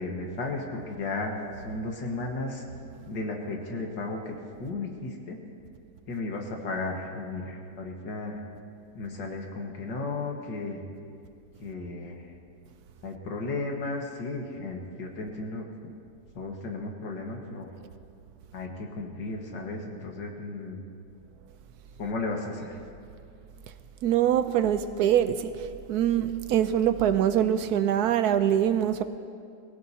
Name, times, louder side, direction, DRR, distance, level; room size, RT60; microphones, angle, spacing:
voice 1, 0.0-2.6 3.1-4.3 4.6-5.4 6.1-8.4 9.0-10.8 11.6-12.2 13.0-15.9 16.4-17.7 18.5-20.8 22.0-22.8, left 2 dB, 90° left, 2.2 m, -34 dB
voice 2, 24.0-29.0, right 10 dB, 70° right, 1.0 m, -24 dB
24.0 x 17.0 x 2.8 m
omnidirectional pair, 1.9 m